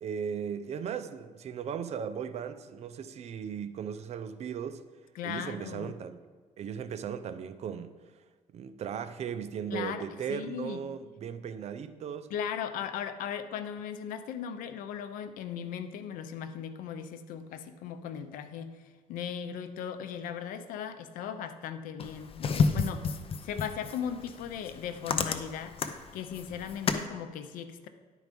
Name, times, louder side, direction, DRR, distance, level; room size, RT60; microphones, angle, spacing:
voice 1, 0.0-4.8 5.2-6.2 6.6-8.0 8.5-12.3, right 7 dB, 50° right, 10 dB, 0.6 m, -37 dB
voice 2, 5.2-5.9 9.7-10.8 12.3-23.1 23.4-25.8 26.1-27.9, left 8 dB, 90° left, 10 dB, 0.6 m, -38 dB
sound 1, 22.0-27.1, left 5 dB, 45° left, 0.6 m, -31 dB
11.0 x 4.7 x 5.2 m, 1.4 s
cardioid pair, 115°, 14 cm